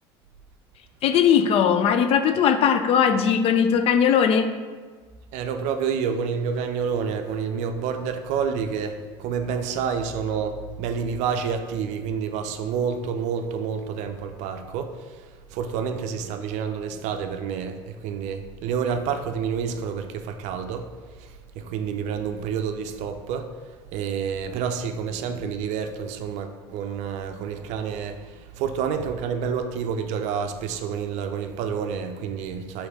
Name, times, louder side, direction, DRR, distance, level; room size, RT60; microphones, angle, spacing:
voice 1, 1.0-4.5, left 7 dB, 50° left, 9 dB, 0.4 m, -19 dB
voice 2, 5.3-15.3 15.5-20.9 21.2-23.5 23.9-32.9, right 6 dB, 65° right, 7 dB, 0.4 m, -29 dB
3.2 x 3.1 x 4.7 m, 1.5 s
hypercardioid pair, 75°, 13 cm